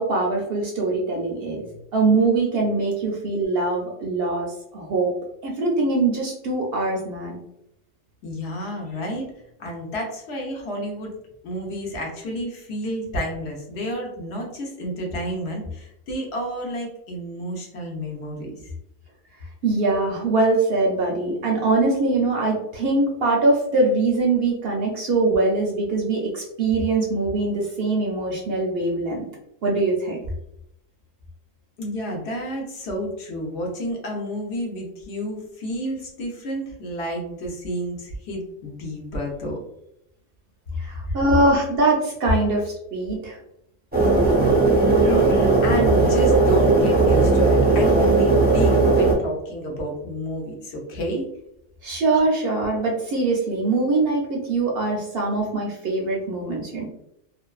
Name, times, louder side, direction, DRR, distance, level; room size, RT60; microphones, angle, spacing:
voice 1, 0.0-1.6 1.9-5.1 5.4-7.4 19.6-29.2 29.6-30.2 40.8-43.4 51.8-56.9, right 3 dB, 65° right, -1 dB, 0.7 m, -22 dB
voice 2, 8.2-9.3 9.6-11.1 11.4-18.7 31.8-39.6 41.0-41.2 44.8-51.2, equal, 65° left, 0 dB, 0.8 m, -30 dB
sound 1, 43.9-49.1, right 3 dB, 15° right, 0.3 m, -17 dB
2.5 x 2.2 x 2.3 m, 0.80 s
omnidirectional pair, 1.3 m